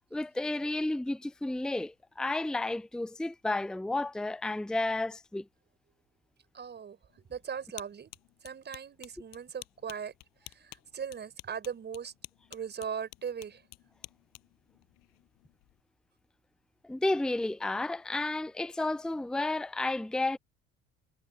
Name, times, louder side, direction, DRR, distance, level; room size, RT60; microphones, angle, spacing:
voice 1, 0.1-5.5 16.8-20.4, left 2 dB, ahead, 0.7 m, -32 dB
voice 2, 6.5-8.1 8.4-10.1 10.4-12.1 12.5-13.6, right 7 dB, 30° right, 7.1 m, -39 dB
sound 1, 7.1-15.8, left 21 dB, 55° left, 6.6 m, -53 dB
figure-of-eight pair, 60°, 33 cm